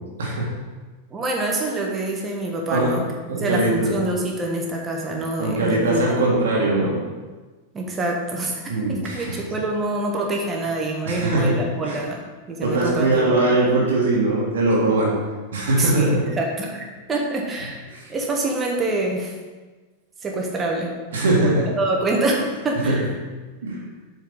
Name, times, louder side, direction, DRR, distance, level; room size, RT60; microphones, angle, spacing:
voice 1, 0.2-0.5 2.7-3.0 3.3-3.9 5.4-7.0 8.7-9.4 11.1-12.0 12.6-15.1 15.5-16.2 17.9-18.1 21.1-21.7 22.8-22.9 23.6-23.8, right 2 dB, 65° right, -3 dB, 1.8 m, -21 dB
voice 2, 1.1-6.1 7.7-12.2 12.5-13.5 15.8-19.3 20.2-20.9 21.4-23.0, right 2 dB, 20° right, 0 dB, 1.5 m, -26 dB
7.8 x 4.5 x 5.4 m, 1.3 s
figure-of-eight pair, 90°, 0 cm